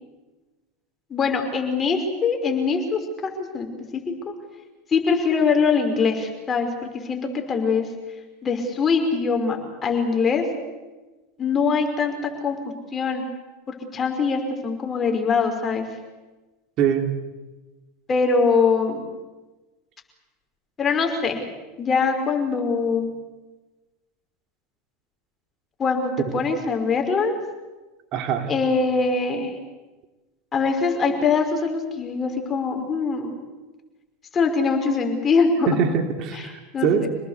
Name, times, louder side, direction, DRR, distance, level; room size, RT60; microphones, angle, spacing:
voice 1, 1.1-3.0 3.5-3.7 4.9-7.9 8.4-9.6 9.8-10.4 11.4-12.6 12.9-13.2 13.9-15.8 18.1-19.0 20.8-21.4 21.8-23.1 25.8-27.4 28.5-29.5 30.5-33.3 34.3-35.8 36.3-36.4 36.7-37.1, left 5 dB, 30° left, 4 dB, 5.6 m, -22 dB
voice 2, 16.8-17.1 28.1-28.5 35.7-37.1, right 7 dB, 50° right, 6 dB, 3.2 m, -23 dB
27.0 x 19.5 x 8.4 m, 1.2 s
hypercardioid pair, 95°, 0 cm